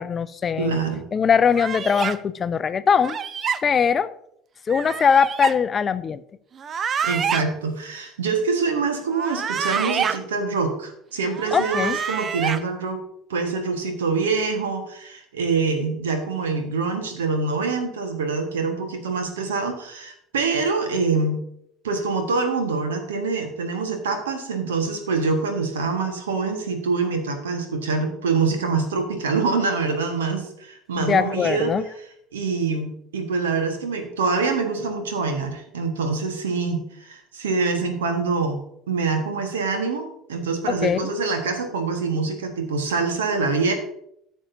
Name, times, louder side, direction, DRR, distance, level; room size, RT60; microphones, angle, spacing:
voice 1, 0.0-0.8 1.1-3.2 3.6-4.1 4.7-6.2 11.5-12.0 30.9-31.8 40.7-41.1, left 6 dB, 30° left, 0.4 m, -21 dB
voice 2, 0.6-1.0 7.0-13.0 13.3-21.4 21.8-31.7 32.3-38.6 38.9-43.7, right 4 dB, 75° right, 1.5 m, -25 dB
sound 1, 1.5-2.2 3.0-3.6 4.7-5.5 6.6-7.4 9.1-10.2 11.3-12.6, right 7 dB, 35° right, 0.5 m, -27 dB
14.0 x 6.2 x 2.7 m
figure-of-eight pair, 65°, 0 cm